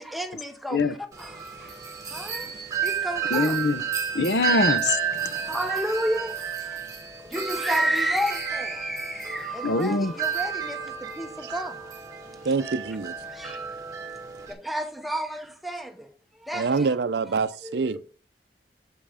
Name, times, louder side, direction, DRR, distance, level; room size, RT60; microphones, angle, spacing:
voice 1, 0.0-1.7 2.1-2.5 2.8-3.6 5.2-6.8 7.3-11.9 13.3-13.6 14.5-16.1 16.4-16.9 17.6-17.9, equal, ahead, 0.8 m, -31 dB
Wind chime, 1.1-14.5, right 8 dB, 20° right, 1.4 m, -31 dB
voice 2, 3.3-3.8 4.1-5.4 9.6-10.1, left 3 dB, 75° left, 0.7 m, -24 dB
voice 3, 12.4-13.2 16.5-18.1, right 4 dB, 70° right, 0.5 m, -26 dB
7.6 x 5.5 x 5.0 m
head